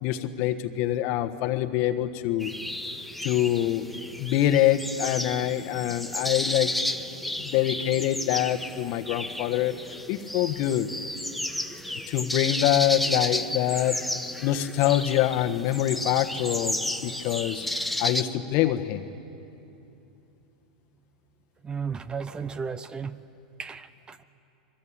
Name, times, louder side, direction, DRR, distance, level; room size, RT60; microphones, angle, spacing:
voice 1, 0.0-2.5 3.2-3.9 4.2-6.8 7.4-9.7 10.1-10.9 12.1-14.0 14.4-17.7 18.0-19.0, left 12 dB, 55° left, 9 dB, 1.3 m, -25 dB
sound 1, 2.4-18.2, left 1 dB, ahead, 1.0 m, -32 dB
voice 2, 21.6-23.2 23.6-24.2, right 6 dB, 20° right, 15 dB, 0.8 m, -34 dB
24.5 x 22.0 x 8.7 m, 2.8 s
hypercardioid pair, 105°, 4 cm